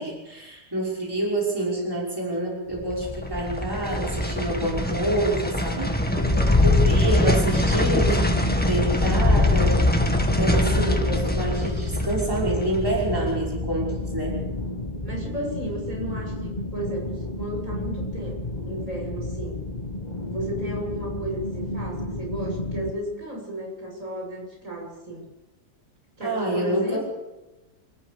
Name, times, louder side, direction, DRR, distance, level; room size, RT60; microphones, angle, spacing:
voice 1, 0.0-5.9 6.6-9.8 10.4-14.4 26.2-27.0, right 1 dB, 15° right, -4 dB, 5.6 m, -27 dB
sound 1, 2.7-15.9 16.2-16.3, left 1 dB, 5° left, 1.7 m, -23 dB
voice 2, 6.1-6.7 13.1-13.4 15.0-19.6 20.2-25.3 26.2-27.0, right 1 dB, 50° right, -1 dB, 7.3 m, -34 dB
sound 2, 6.2-22.9, left 2 dB, 25° left, 1.6 m, -32 dB
27.0 x 15.0 x 6.9 m, 1.1 s
omnidirectional pair, 1.8 m